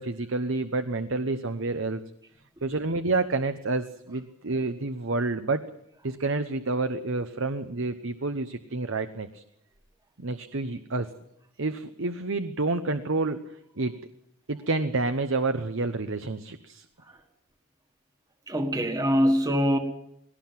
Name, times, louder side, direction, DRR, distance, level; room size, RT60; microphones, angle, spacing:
voice 1, 0.0-2.0 2.6-5.6 6.0-9.4 10.2-11.1 11.6-13.4 13.8-14.0 14.5-16.8, right 3 dB, 60° right, 9 dB, 1.0 m, -29 dB
voice 2, 18.5-19.8, equal, 15° right, 6 dB, 1.7 m, -23 dB
20.5 x 18.0 x 7.6 m, 0.77 s
head